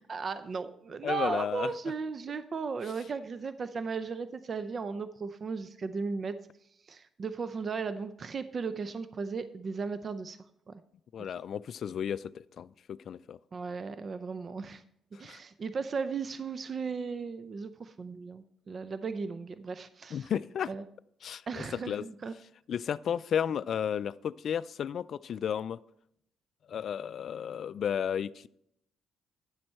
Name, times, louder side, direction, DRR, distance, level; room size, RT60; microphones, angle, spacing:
voice 1, 0.1-6.4 6.9-10.4 10.7-10.8 13.5-14.8 15.2-20.3 20.7-20.8 21.5-22.3, right 5 dB, 45° right, 12 dB, 0.5 m, -36 dB
voice 2, 1.0-1.7 2.8-2.9 11.1-13.4 15.1-15.4 20.1-20.7 21.2-22.1 22.7-25.8 26.7-28.5, left 8 dB, 60° left, 18 dB, 0.3 m, -33 dB
10.5 x 7.7 x 4.3 m, 0.74 s
cardioid pair, 90°, 0 cm